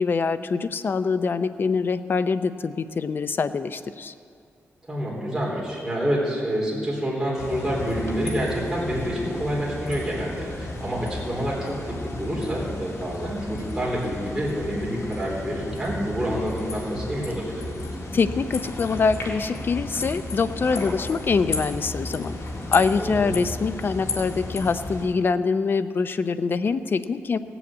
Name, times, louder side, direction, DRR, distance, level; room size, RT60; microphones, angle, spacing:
voice 1, 0.0-4.1 18.1-22.4 22.7-27.4, left 4 dB, 45° left, 12 dB, 0.6 m, -24 dB
voice 2, 4.9-17.6 23.0-23.3, equal, 5° right, -5 dB, 3.6 m, -28 dB
sound 1, 7.4-25.0, left 2 dB, 85° left, 2.0 m, -33 dB
16.5 x 7.0 x 8.6 m, 2.3 s
wide cardioid pair, 115°, 5 cm